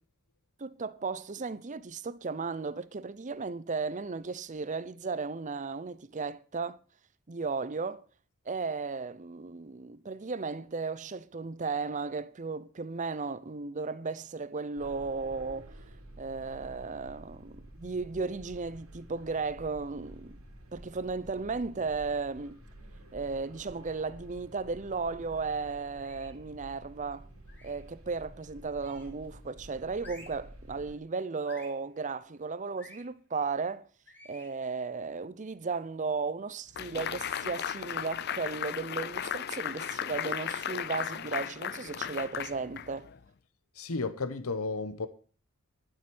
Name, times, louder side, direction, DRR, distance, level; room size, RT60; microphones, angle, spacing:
voice 1, 0.6-6.8 7.3-8.0 8.5-15.8 16.2-20.4 20.7-22.6 23.1-27.3 27.6-33.9 34.2-43.1, right 4 dB, 35° right, 0.6 m, -35 dB
sound 1, 14.8-30.9, right 1 dB, 85° right, 3.6 m, -50 dB
sound 2, 26.0-26.4 27.5-27.9 28.8-29.3 30.0-30.5 31.4-31.8 32.8-33.0 34.1-34.5, left 1 dB, 10° left, 3.4 m, -52 dB
sound 3, 36.8-43.2, left 9 dB, 50° left, 0.5 m, -36 dB
voice 2, 43.7-45.1, left 3 dB, 75° left, 0.9 m, -33 dB
11.5 x 7.6 x 6.1 m
head